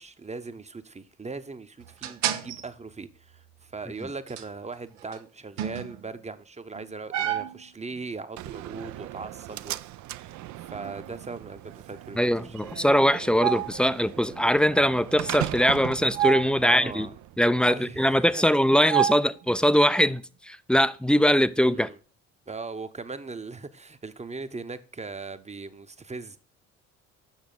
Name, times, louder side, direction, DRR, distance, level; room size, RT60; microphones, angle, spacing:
voice 1, 0.0-9.8 10.1-12.6 16.6-17.1 17.7-18.4 21.7-22.0 22.5-26.4, right 4 dB, 20° right, 0.8 m, -39 dB
sound 1, 1.8-2.7 4.0-4.1 4.3-4.4 5.0-5.2 5.6-6.1 6.7-8.0 9.2-9.4 10.5-11.1 13.4-13.8 16.1-16.7 17.6-17.9 18.9-19.7, right 11 dB, 90° right, 0.7 m, -29 dB
Slam, 8.4-17.4, right 15 dB, 55° right, 0.5 m, -38 dB
voice 2, 12.2-17.1 17.4-21.9, equal, 5° left, 0.4 m, -22 dB
7.3 x 6.2 x 3.9 m
hypercardioid pair, 55°, 36 cm